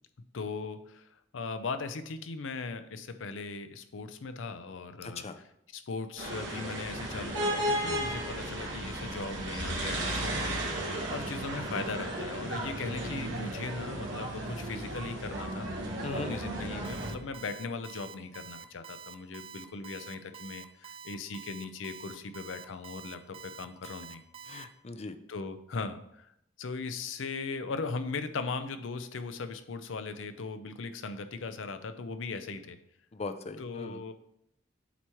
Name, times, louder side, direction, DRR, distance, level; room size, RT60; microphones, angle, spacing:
voice 1, 0.3-5.2 5.7-24.2 25.3-26.3 26.6-32.8 33.6-34.1, left 4 dB, 85° left, 10 dB, 0.6 m, -38 dB
voice 2, 5.0-5.4 16.0-16.3 24.5-25.1 33.1-34.0, left 3 dB, 35° left, 10 dB, 0.4 m, -39 dB
sound 1, 6.2-17.1, right 1 dB, 65° right, 1.5 m, -34 dB
Alarm, 16.8-24.6, right 8 dB, 30° right, 0.4 m, -47 dB
8.0 x 3.0 x 4.4 m, 0.76 s
head